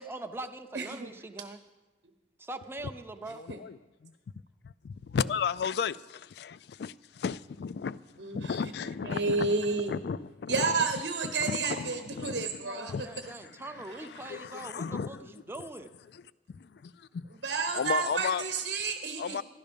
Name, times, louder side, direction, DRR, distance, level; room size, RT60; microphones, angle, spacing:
voice 1, 0.0-1.6 2.4-3.4 12.6-15.9, right 2 dB, 15° right, 0.5 m, -42 dB
voice 2, 0.7-1.1 3.5-3.6 8.2-8.5 9.0-9.9 10.5-12.9 17.4-19.4, right 4 dB, 65° right, 0.9 m, -30 dB
voice 3, 3.4-4.1 4.6-8.0 8.3-9.6 9.9-10.9 11.2-13.7 14.0-15.2 16.1-16.2 16.5-17.3 17.7-18.4 19.2-19.4, left 6 dB, 60° left, 0.3 m, -34 dB
12.0 x 12.0 x 5.2 m
head